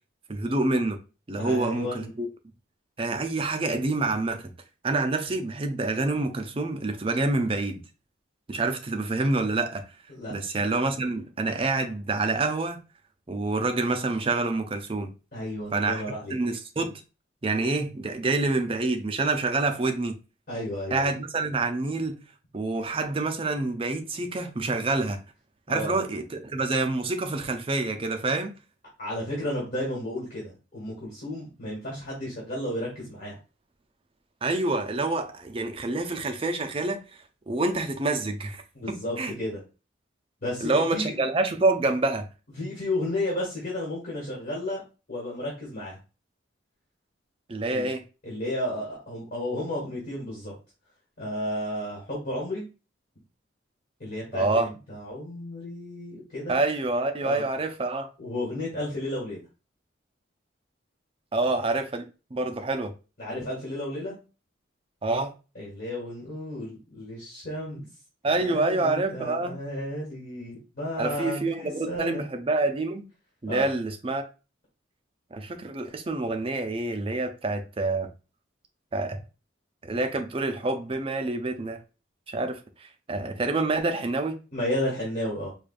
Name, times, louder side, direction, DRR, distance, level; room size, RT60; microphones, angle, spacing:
voice 1, 0.3-1.0 1.3-2.3 3.0-4.5 4.8-7.8 8.5-9.8 10.3-12.8 13.3-15.1 15.7-16.0 16.3-16.9 17.4-20.2 20.9-22.2 22.5-25.2 25.7-28.5 34.4-37.0 37.5-38.6 38.9-39.3 40.6-42.3 47.5-48.0 54.3-54.7 56.5-58.1 61.3-62.9 65.0-65.3 68.2-69.6 71.0-73.0 73.4-74.2 75.3-78.1 78.9-79.2 79.8-81.8 82.3-82.6 83.1-84.3, right 2 dB, 30° right, 0.5 m, -27 dB
voice 2, 1.4-2.1 10.1-10.3 15.3-16.4 20.5-21.1 25.7-26.0 29.0-33.4 38.7-39.6 40.4-41.2 42.6-44.8 45.1-46.0 47.7-47.9 48.2-50.5 51.2-52.6 54.0-56.6 57.2-57.4 58.2-59.4 63.2-64.2 65.5-67.8 68.3-72.3 73.5-73.7 84.5-85.5, left 1 dB, 45° left, 1.7 m, -33 dB
4.8 x 2.4 x 2.5 m
head